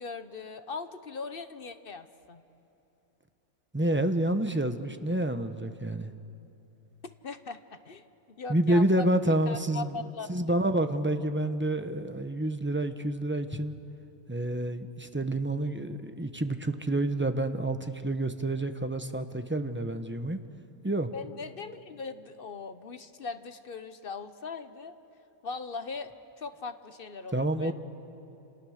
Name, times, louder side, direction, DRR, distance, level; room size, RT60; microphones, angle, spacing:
voice 1, 0.0-2.4 7.2-10.6 21.1-25.0 25.4-26.1 26.4-27.7, left 4 dB, 45° left, 10 dB, 1.0 m, -40 dB
voice 2, 3.7-6.1 8.5-9.9 10.3-13.7 14.3-20.4 20.8-21.1 27.3-27.7, right 1 dB, 10° right, 8 dB, 0.7 m, -28 dB
29.0 x 29.0 x 6.5 m, 2.8 s
omnidirectional pair, 1.6 m